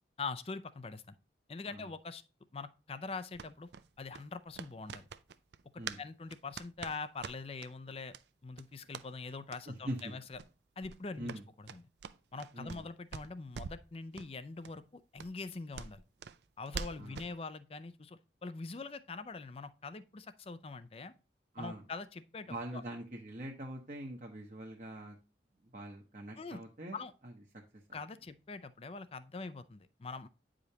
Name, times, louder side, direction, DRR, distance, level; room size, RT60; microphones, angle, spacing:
voice 1, 0.2-1.1 1.5-2.2 2.5-3.7 4.0-5.1 5.7-8.1 8.4-10.4 10.8-11.8 12.3-16.0 16.6-21.1 21.6-22.8 26.4-26.6 26.9-27.1 27.9-30.3, left 4 dB, 30° left, 0.4 m, -43 dB
sound 1, 3.3-6.0 6.3-7.7 8.1-8.2 8.5-9.1 9.5-9.6 9.9-10.1 10.3-10.5 10.8-12.8 13.1-13.9 14.1-14.3 14.6-14.7 15.2-17.3, right 6 dB, 70° right, 0.4 m, -45 dB
voice 2, 9.7-10.1 11.2-11.4 12.5-12.9 17.0-17.2 21.5-21.8 22.5-25.2 25.7-27.0 27.2-27.3 27.7-28.0, right 1 dB, 40° right, 0.9 m, -43 dB
9.2 x 5.0 x 2.8 m
head